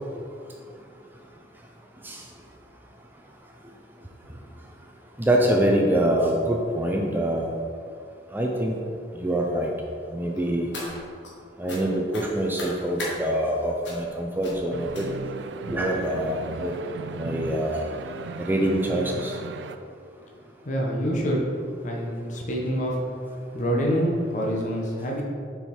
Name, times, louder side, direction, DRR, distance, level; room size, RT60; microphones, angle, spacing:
voice 1, 5.2-7.5 8.3-8.8 9.2-9.7 10.1-10.7 11.6-15.0 15.7-16.7 17.1-17.8 18.5-19.3, right 1 dB, 10° right, 0 dB, 0.5 m, -25 dB
sound 1, 10.3-11.3 11.7-11.8 12.1-13.1 13.8-14.1 14.4-14.6 14.9-15.3 16.0-16.1 16.5-16.7 17.0-17.1, left 1 dB, 70° left, 1.6 m, -37 dB
sound 2, 14.7-19.8, right 3 dB, 70° right, 0.3 m, -37 dB
voice 2, 20.6-21.4 21.8-23.0 23.5-25.2, equal, 40° left, -2 dB, 1.0 m, -26 dB
6.6 x 4.8 x 4.3 m, 2.3 s
head